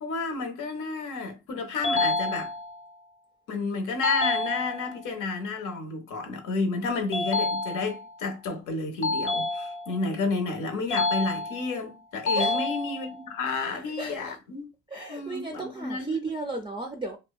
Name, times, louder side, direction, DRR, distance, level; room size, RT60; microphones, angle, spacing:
voice 1, 0.0-2.5 3.5-14.7 15.1-16.2, left 3 dB, 80° left, 0.7 m, -31 dB
sound 1, 1.8-2.9 4.0-5.0 7.1-8.1 9.0-10.1 10.9-11.8 12.3-13.3, left 2 dB, 45° left, 0.5 m, -28 dB
voice 2, 13.7-14.4 14.9-17.2, right 3 dB, 15° right, 0.4 m, -34 dB
2.6 x 2.1 x 2.3 m
cardioid pair, 90°, 30 cm